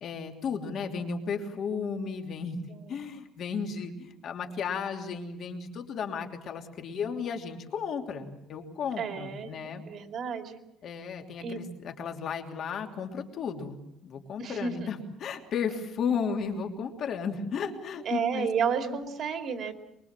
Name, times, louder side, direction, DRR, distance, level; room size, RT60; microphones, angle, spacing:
voice 1, 0.0-2.6 2.9-9.8 10.8-19.0, left 6 dB, 45° left, 3 dB, 3.0 m, -34 dB
voice 2, 2.7-3.1 9.0-9.6 9.9-10.6 11.4-11.6 14.4-14.9 18.0-19.7, right 6 dB, 40° right, 5 dB, 2.8 m, -31 dB
24.0 x 23.5 x 7.5 m, 0.84 s
cardioid pair, 160°, 0 cm